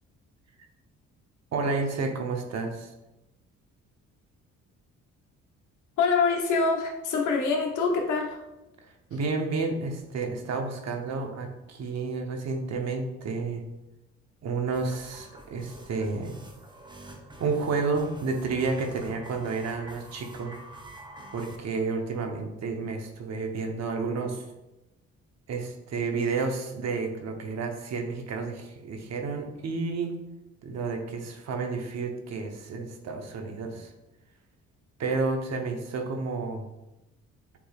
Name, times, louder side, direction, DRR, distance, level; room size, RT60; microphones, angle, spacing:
voice 1, 1.5-2.9 8.8-13.6 14.4-16.3 17.0-17.1 17.4-20.5 21.3-24.4 25.5-30.1 30.6-33.9 35.0-36.7, right 4 dB, 60° right, 3 dB, 0.9 m, -31 dB
voice 2, 6.0-8.4, left 4 dB, 80° left, 1 dB, 1.0 m, -25 dB
sound 1, 14.7-21.6, right 1 dB, 15° right, 0.7 m, -47 dB
7.0 x 3.2 x 2.4 m, 0.96 s
cardioid pair, 90°, 30 cm